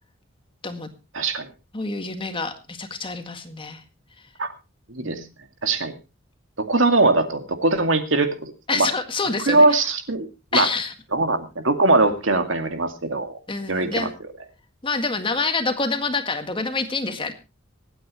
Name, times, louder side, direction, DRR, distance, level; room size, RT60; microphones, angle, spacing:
voice 1, 1.1-1.5 4.4-4.5 4.9-5.2 5.6-6.0 6.6-8.9 9.5-10.3 10.5-10.7 11.1-13.4 13.7-14.1, right 3 dB, 70° right, 7 dB, 2.3 m, -21 dB
voice 2, 1.7-3.8 5.0-5.3 8.7-9.6 10.5-10.9 13.5-14.1 14.8-17.3, left 3 dB, 25° left, 7 dB, 1.9 m, -27 dB
25.5 x 9.2 x 3.1 m, 0.29 s
head